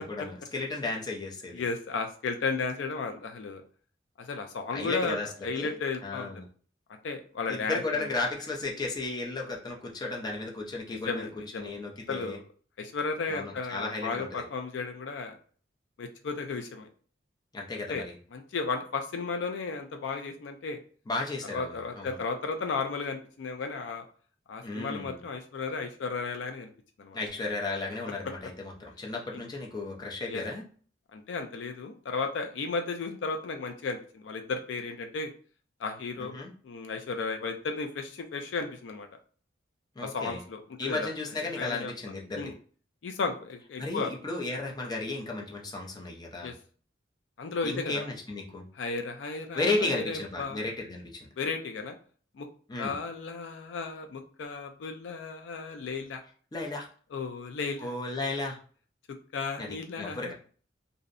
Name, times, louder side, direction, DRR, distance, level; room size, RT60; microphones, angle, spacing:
voice 1, 0.0-1.6 4.7-5.3 5.5-5.7 6.0-6.4 7.5-11.3 11.6-12.4 13.3-14.4 17.5-18.1 21.1-22.2 24.6-25.2 27.1-30.6 36.2-36.5 40.0-40.4 40.8-42.5 43.8-46.5 47.6-48.7 49.5-51.3 52.7-52.9 56.5-56.9 57.8-58.6 59.6-59.7 60.0-60.3, left 3 dB, 20° left, -1 dB, 0.5 m, -34 dB
voice 2, 1.5-3.6 4.2-5.2 5.4-6.3 7.0-8.1 10.9-11.7 12.1-12.4 12.8-15.4 16.0-16.9 17.9-18.0 18.3-20.8 21.5-24.0 24.5-26.7 27.0-27.2 29.3-29.4 30.3-30.4 31.1-35.3 35.8-36.3 36.6-39.1 40.0-41.1 41.6-41.9 42.4-42.5 43.0-44.1 46.4-46.5 47.4-48.0 48.7-50.7 51.4-51.9 52.3-52.5 52.8-56.2 57.1-57.9 59.3-60.3, left 4 dB, 75° left, 5 dB, 0.4 m, -34 dB
2.6 x 2.0 x 2.4 m, 0.42 s
head